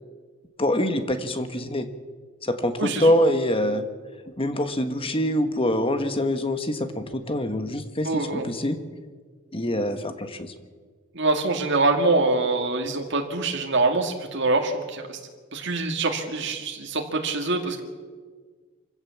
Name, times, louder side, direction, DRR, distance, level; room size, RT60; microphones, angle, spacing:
voice 1, 0.6-1.9 2.4-3.8 4.4-8.8 9.5-10.5, left 1 dB, 30° left, 8 dB, 1.5 m, -24 dB
voice 2, 2.8-3.1 8.0-8.5 11.1-15.2 15.5-17.8, right 3 dB, 60° right, 2 dB, 2.3 m, -24 dB
25.0 x 16.0 x 7.2 m, 1.5 s
head